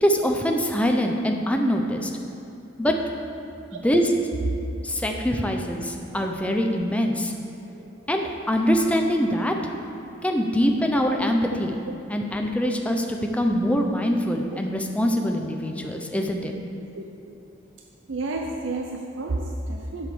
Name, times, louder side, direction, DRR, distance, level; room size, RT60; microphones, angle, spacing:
voice 1, 0.0-2.1 2.8-2.9 3.8-4.0 4.8-7.3 8.1-9.5 10.2-11.8 12.1-16.5, equal, 5° left, 2 dB, 0.6 m, -23 dB
voice 2, 16.9-17.3 17.8-20.1, right 2 dB, 80° right, 2 dB, 0.6 m, -33 dB
7.8 x 6.1 x 6.9 m, 2.8 s
head